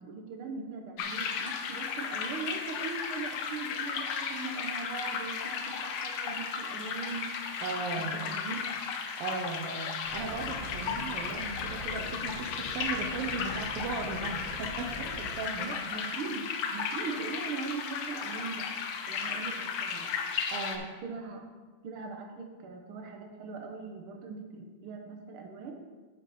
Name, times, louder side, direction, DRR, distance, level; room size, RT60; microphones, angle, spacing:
voice 1, 0.0-7.3 8.0-8.6 15.6-18.6 19.1-20.1 20.8-21.4 21.8-25.8, right 4 dB, 60° right, 2 dB, 1.5 m, -40 dB
sound 1, 1.0-20.8, left 6 dB, 70° left, 1.7 m, -35 dB
voice 2, 7.6-8.3 9.2-15.7 17.0-17.2 20.5-20.9, right 4 dB, 75° right, 1 dB, 1.3 m, -37 dB
sound 2, 10.0-15.4, right 1 dB, 50° left, 2.8 m, -44 dB
9.9 x 6.9 x 4.2 m, 1.3 s
omnidirectional pair, 3.5 m